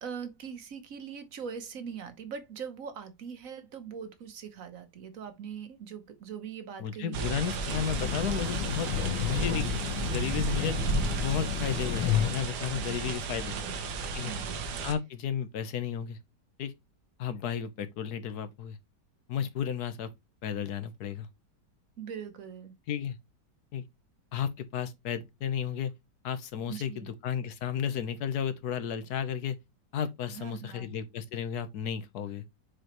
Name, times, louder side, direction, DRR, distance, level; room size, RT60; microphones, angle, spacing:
voice 1, 0.0-7.4 10.4-10.7 12.7-13.1 13.5-13.8 14.2-14.6 22.0-22.7 26.7-27.1 30.3-30.9, right 7 dB, 55° right, 1.3 m, -42 dB
voice 2, 6.8-8.9 9.2-9.8 10.0-10.8 11.2-13.6 14.1-14.3 14.8-16.2 16.6-16.7 17.2-18.8 19.3-20.1 20.4-21.3 22.9-23.2 23.7-23.8 24.3-25.9 26.2-29.6 29.9-32.5, left 8 dB, 65° left, 1.4 m, -33 dB
sound 1, 7.1-14.9, right 3 dB, 70° right, 1.5 m, -33 dB
Train, 7.6-12.6, left 10 dB, 90° left, 1.4 m, -32 dB
6.7 x 4.8 x 3.0 m
omnidirectional pair, 1.9 m